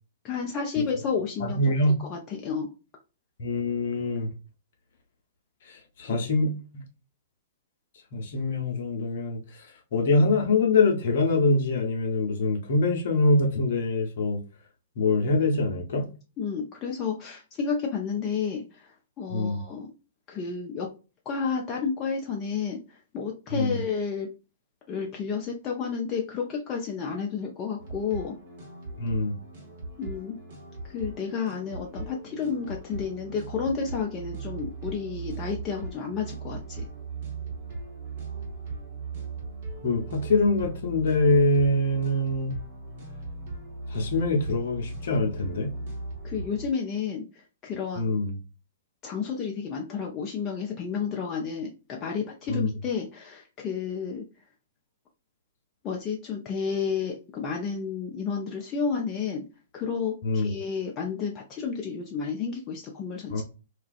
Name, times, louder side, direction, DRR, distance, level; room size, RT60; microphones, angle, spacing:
voice 1, 0.2-2.7 16.4-19.9 20.3-20.9 21.3-24.3 24.9-28.4 30.0-30.4 30.9-36.9 46.2-48.1 49.0-54.2 55.8-59.4 59.7-63.4, left 6 dB, 30° left, 0.4 m, -31 dB
voice 2, 1.4-2.0 3.4-4.3 5.7-6.8 8.1-9.7 9.9-14.4 15.0-16.1 19.3-19.6 23.5-23.8 29.0-29.4 39.8-42.5 43.9-45.7 48.0-48.4 52.5-52.7 60.2-60.5 63.3-63.4, left 2 dB, 55° left, 0.7 m, -24 dB
sound 1, 27.8-46.7, right 3 dB, 50° right, 1.0 m, -38 dB
2.4 x 2.3 x 2.3 m
figure-of-eight pair, 110°, 0 cm